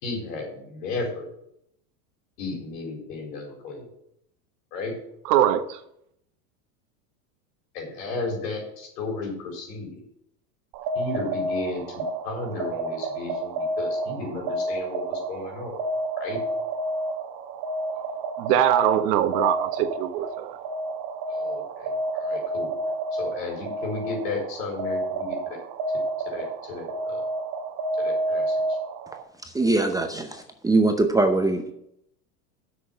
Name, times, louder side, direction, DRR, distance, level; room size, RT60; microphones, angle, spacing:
voice 1, 0.0-1.3 2.4-3.9 4.7-4.9 7.7-10.0 10.9-15.8 16.2-16.4 21.3-22.7 23.1-25.6 26.3-27.2 28.0-28.8, left 3 dB, 75° left, 4.4 m, -34 dB
voice 2, 5.3-5.8 18.0-18.1 18.4-20.6, right 12 dB, 70° right, 1.2 m, -22 dB
sound 1, 10.7-29.2, right 2 dB, 50° right, 1.3 m, -30 dB
voice 3, 29.5-31.7, right 2 dB, 10° right, 0.7 m, -22 dB
7.6 x 6.3 x 8.1 m
supercardioid pair, 125°, 48 cm